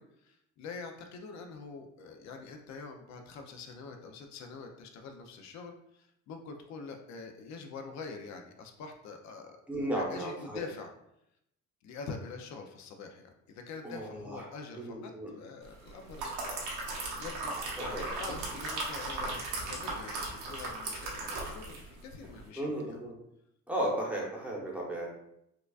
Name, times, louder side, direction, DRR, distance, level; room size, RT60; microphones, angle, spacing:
voice 1, 0.0-9.6 9.9-10.9 11.8-16.3 17.1-23.0, left 4 dB, 65° left, 4 dB, 0.5 m, -45 dB
voice 2, 9.7-10.7 13.8-14.5 14.8-15.3 17.8-18.3 22.6-23.1 23.7-25.1, right 1 dB, 5° right, -3 dB, 0.8 m, -35 dB
sound 1, 15.9-21.9 22.2-22.4, right 2 dB, 80° right, 1.1 m, -37 dB
4.7 x 2.3 x 2.3 m, 0.79 s
cardioid pair, 135°, 30 cm